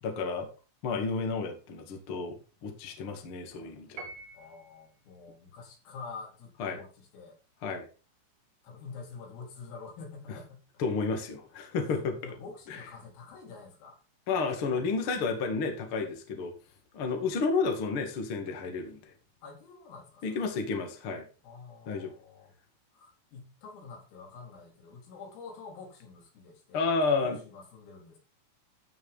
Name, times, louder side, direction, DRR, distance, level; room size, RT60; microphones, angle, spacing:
voice 1, 0.0-0.5 0.8-4.1 6.6-6.8 7.6-7.9 10.8-12.2 12.7-12.8 14.3-16.5 16.9-19.1 20.2-21.2 21.9-22.1 26.7-27.4, left 4 dB, 45° left, 3 dB, 1.9 m, -31 dB
Piano, 4.0-4.9, right 3 dB, 50° right, 3.1 m, -45 dB
voice 2, 4.3-7.4 8.6-10.8 12.2-14.0 14.7-15.5 17.1-17.3 19.4-20.6 21.4-22.5 22.9-28.2, left 4 dB, 85° left, -1 dB, 6.7 m, -47 dB
15.0 x 6.5 x 3.7 m, 0.32 s
omnidirectional pair, 5.9 m